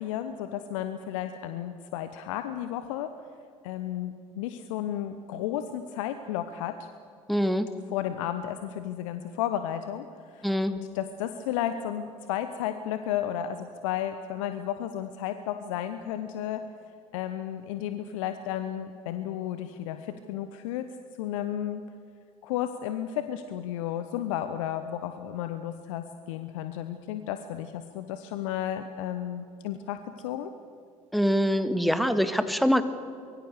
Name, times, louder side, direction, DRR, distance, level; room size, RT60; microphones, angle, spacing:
voice 1, 0.0-3.1 3.6-6.7 7.9-16.6 17.1-20.8 21.2-21.8 22.4-30.0 30.2-30.5, left 11 dB, 65° left, 10 dB, 1.1 m, -33 dB
voice 2, 7.3-7.7 10.4-10.8 31.1-32.8, equal, ahead, 10 dB, 1.7 m, -24 dB
24.0 x 22.5 x 6.7 m, 2.3 s
figure-of-eight pair, 60°, 18 cm